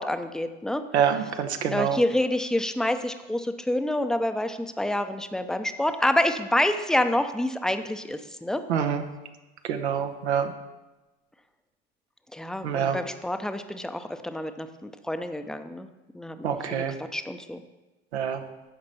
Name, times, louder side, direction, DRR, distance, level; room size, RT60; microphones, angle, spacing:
voice 1, 0.0-0.8 1.7-8.6 12.3-16.8 17.1-17.6, left 1 dB, ahead, 9 dB, 0.6 m, -28 dB
voice 2, 0.9-2.0 8.7-9.0 9.7-10.5 12.6-13.0 16.4-16.9 18.1-18.4, right 8 dB, 85° right, 7 dB, 0.9 m, -26 dB
14.0 x 5.2 x 4.2 m, 1.1 s
hypercardioid pair, 75°, 32 cm